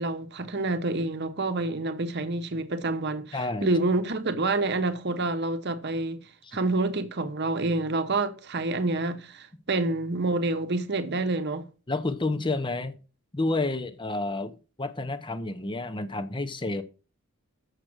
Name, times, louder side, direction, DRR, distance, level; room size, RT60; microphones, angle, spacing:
voice 1, 0.0-6.2 6.5-11.7, right 2 dB, 50° right, 0.9 m, -28 dB
voice 2, 3.3-3.7 6.4-6.6 11.9-12.9 13.3-16.8, left 2 dB, 20° left, 0.7 m, -30 dB
7.4 x 6.6 x 6.1 m
head